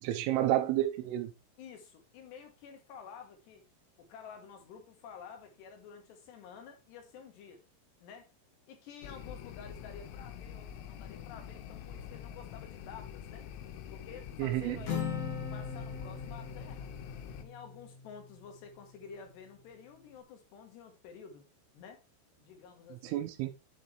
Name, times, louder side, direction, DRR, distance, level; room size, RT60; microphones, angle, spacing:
voice 1, 0.0-1.3 14.4-14.8 23.0-23.5, right 13 dB, 85° right, 3.4 m, -30 dB
voice 2, 1.6-3.6 4.0-7.6 8.0-8.3 8.7-13.5 13.9-15.1 15.5-16.9 17.4-21.4 21.7-22.0 22.4-23.2, left 6 dB, 70° left, 3.2 m, -51 dB
sound 1, 9.0-17.4, left 9 dB, 90° left, 3.5 m, -46 dB
Acoustic guitar, 14.9-18.5, left 6 dB, 50° left, 2.2 m, -39 dB
9.4 x 8.0 x 3.3 m
omnidirectional pair, 5.7 m